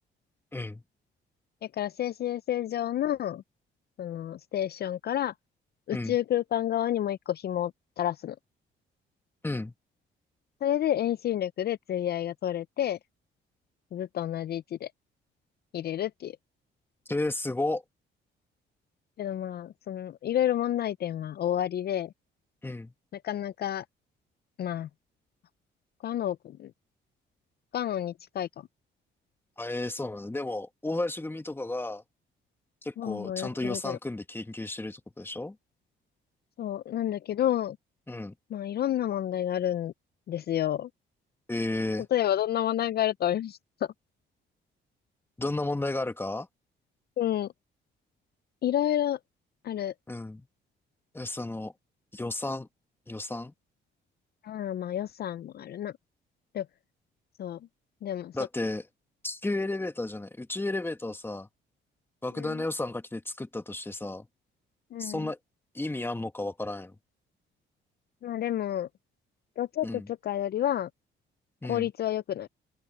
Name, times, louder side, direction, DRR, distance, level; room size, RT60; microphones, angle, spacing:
voice 1, 0.5-0.8 5.9-6.2 9.4-9.7 17.1-17.8 22.6-22.9 29.6-32.0 32.8-35.6 38.1-38.3 41.5-42.1 45.4-46.5 50.1-50.5 51.1-51.7 52.1-52.7 53.1-53.5 58.3-58.8 59.2-61.5 62.2-64.3 65.0-65.4 65.7-66.9 69.8-70.1 71.6-71.9, left 2 dB, 10° left, 1.4 m, -33 dB
voice 2, 1.7-3.4 4.0-5.3 5.9-7.7 8.0-8.4 10.6-13.0 13.9-14.9 15.7-16.4 19.2-22.1 23.1-23.8 24.6-24.9 26.0-26.7 27.7-28.7 33.0-34.0 36.6-37.8 38.5-39.9 40.3-40.9 42.1-43.9 47.2-47.5 48.6-49.2 49.6-49.9 54.4-55.9 56.5-56.7 57.4-57.6 58.0-58.3 62.3-62.6 64.9-65.3 68.2-68.9 69.6-70.9 71.6-72.5, left 11 dB, 55° left, 0.5 m, -30 dB
open air
cardioid pair, 90°, 20 cm